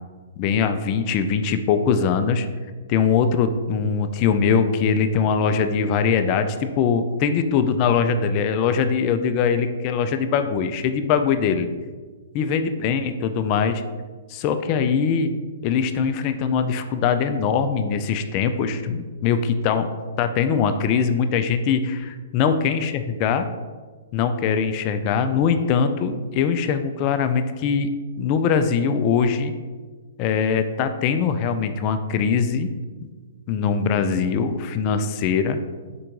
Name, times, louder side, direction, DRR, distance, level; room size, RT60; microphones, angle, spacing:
voice 1, 0.4-2.5 2.9-11.7 12.3-13.8 14.3-15.3 15.6-19.9 20.2-23.5 24.1-27.9 28.2-29.5 30.2-32.7 33.0-33.1 33.5-35.6, left 6 dB, 35° left, 9 dB, 0.3 m, -22 dB
4.5 x 2.5 x 4.5 m, 1.4 s
hypercardioid pair, 145°, 0 cm